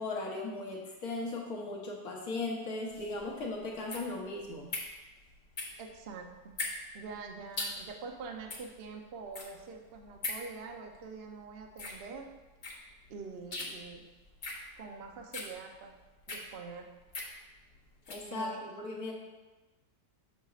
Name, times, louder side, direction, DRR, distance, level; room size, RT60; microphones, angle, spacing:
voice 1, 0.0-4.7 18.1-19.1, left 2 dB, 60° left, -1 dB, 1.5 m, -37 dB
sound 1, 2.9-18.3, left 3 dB, 40° left, 0.7 m, -42 dB
voice 2, 5.8-6.6 6.9-12.3 13.1-14.0 14.8-16.0 16.3-16.9 18.3-18.6, right 4 dB, 60° right, 3 dB, 0.6 m, -45 dB
8.1 x 6.2 x 2.4 m, 1.1 s
omnidirectional pair, 1.9 m